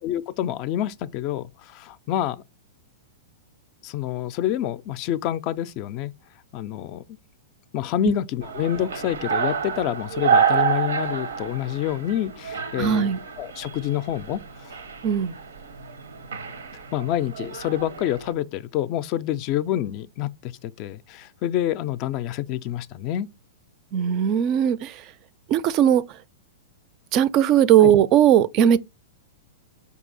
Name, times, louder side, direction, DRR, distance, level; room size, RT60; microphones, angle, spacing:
voice 1, 0.0-2.4 3.8-6.1 6.5-7.0 7.7-13.1 13.4-14.8 16.9-23.3 27.8-27.9, left 12 dB, 45° left, 0.3 m, -27 dB
sound 1, 8.4-18.3, right 6 dB, 85° right, 0.7 m, -28 dB
voice 2, 12.8-13.2 15.0-15.3 23.9-24.9 25.5-26.0 27.1-28.8, right 9 dB, 40° right, 0.3 m, -18 dB
4.6 x 2.8 x 3.9 m
hypercardioid pair, 115°, 0 cm